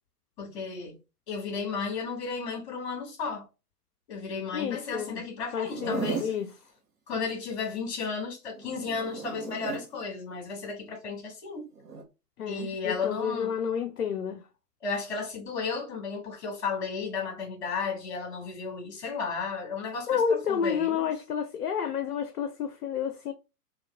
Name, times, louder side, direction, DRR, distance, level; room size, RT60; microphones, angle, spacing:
voice 1, 0.4-1.0 1.3-3.5 4.1-6.3 7.1-11.6 12.5-13.5 14.8-21.1, left 5 dB, 45° left, 1.8 m, -34 dB
voice 2, 4.5-5.2 5.5-6.5 12.4-14.4 20.1-23.3, left 7 dB, 65° left, 0.6 m, -30 dB
Zipper (clothing), 5.6-6.4 8.5-9.9 11.8-12.0, right 5 dB, 70° right, 1.0 m, -36 dB
3.0 x 2.4 x 3.3 m
figure-of-eight pair, 115°, 47 cm